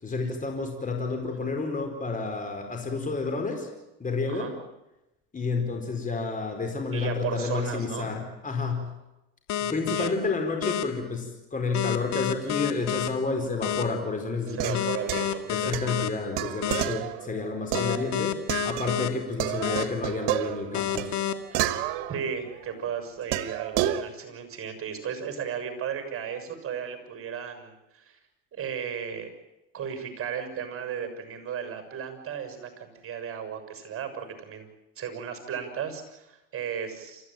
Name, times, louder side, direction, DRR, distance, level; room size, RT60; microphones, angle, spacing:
voice 1, 0.0-3.7 4.0-4.5 5.3-8.9 9.7-14.8 15.5-21.2, left 4 dB, 25° left, 4 dB, 4.6 m, -30 dB
voice 2, 6.9-8.1 9.9-10.2 14.5-15.8 21.5-21.6 22.1-28.2 28.5-29.3 29.7-34.7 34.9-37.3, right 7 dB, 40° right, 7 dB, 6.6 m, -35 dB
sound 1, 9.5-10.1 10.6-10.8 11.7-13.1 13.6-13.8 14.7-16.1 16.6-16.8 17.7-19.1 19.6-19.8 20.7-21.3, left 10 dB, 55° left, 2.1 m, -28 dB
sound 2, 14.5-19.1 19.4-22.7 23.3-24.0, right 13 dB, 75° right, 1.4 m, -31 dB
28.0 x 14.5 x 9.1 m, 0.93 s
supercardioid pair, 95°, 34 cm